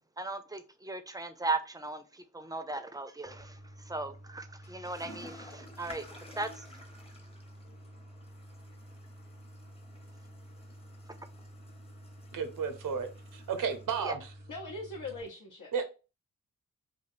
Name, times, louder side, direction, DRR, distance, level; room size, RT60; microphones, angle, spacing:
voice 1, 0.2-3.5 3.9-6.0 6.4-6.5 14.0-14.2, right 3 dB, 10° right, 0.5 m, -37 dB
Toilet flush, 3.2-15.2, equal, 20° left, 0.8 m, -49 dB
voice 2, 12.3-14.3 15.7-15.9, right 6 dB, 80° right, 0.7 m, -33 dB
voice 3, 14.5-15.7, left 2 dB, 75° left, 0.7 m, -41 dB
3.0 x 2.6 x 2.5 m
cardioid pair, 50°, 32 cm